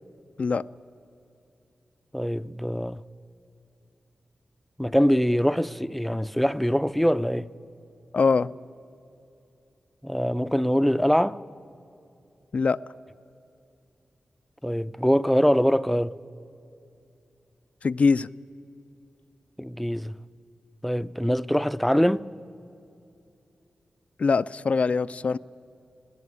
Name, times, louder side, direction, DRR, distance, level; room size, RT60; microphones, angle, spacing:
voice 1, 2.1-3.0 4.8-7.5 10.0-11.4 14.6-16.2 19.6-20.1 20.8-22.3, equal, 5° left, 0.5 m, -23 dB
voice 2, 8.1-8.5 12.5-12.8 17.8-18.3 24.2-25.4, left 4 dB, 60° left, 0.4 m, -22 dB
18.0 x 16.0 x 9.6 m
cardioid pair, 50°, 3 cm